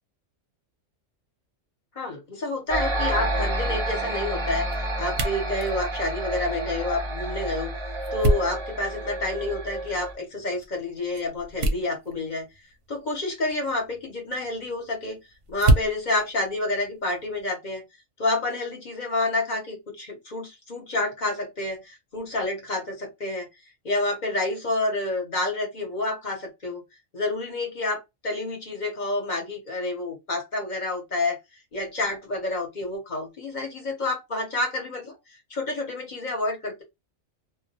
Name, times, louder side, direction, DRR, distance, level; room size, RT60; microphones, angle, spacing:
voice 1, 1.9-7.7 8.1-12.5 12.9-15.2 15.5-17.8 18.2-23.5 23.8-26.8 27.1-31.4 31.7-36.8, left 2 dB, 40° left, 0.9 m, -29 dB
sound 1, 2.6-17.5, right 2 dB, 60° right, 0.7 m, -32 dB
sound 2, 2.7-10.1, right 1 dB, 25° right, 0.8 m, -29 dB
2.2 x 2.2 x 2.7 m
omnidirectional pair, 1.3 m